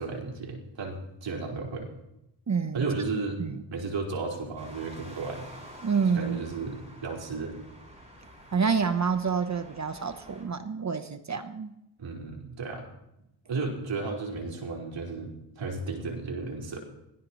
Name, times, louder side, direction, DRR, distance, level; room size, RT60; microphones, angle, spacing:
voice 1, 0.0-1.9 2.7-3.4 3.7-5.5 6.1-7.5 12.0-12.9 13.4-16.8, right 3 dB, 70° right, 0 dB, 4.9 m, -34 dB
voice 2, 2.5-2.9 3.4-3.6 5.8-6.4 8.5-11.7, right 5 dB, 35° right, 9 dB, 1.0 m, -28 dB
sound 1, 4.6-10.4, equal, 15° right, 7.5 m, -49 dB
25.0 x 18.0 x 3.1 m, 0.84 s
cardioid pair, 80°, 45 cm